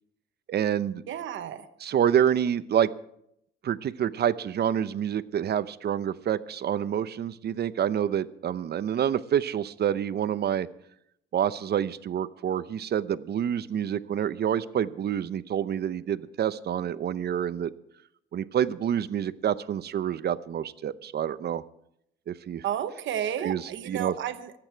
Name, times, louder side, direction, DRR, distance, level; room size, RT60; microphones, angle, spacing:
voice 1, 0.5-1.0 1.8-2.9 3.6-10.7 11.3-17.7 18.3-21.6 22.3-22.6 23.4-24.1, right 9 dB, 55° right, 14 dB, 0.8 m, -27 dB
voice 2, 1.1-1.7 22.6-24.5, right 10 dB, 75° right, 9 dB, 1.2 m, -32 dB
24.5 x 8.9 x 4.6 m, 0.75 s
cardioid pair, 90°, 20 cm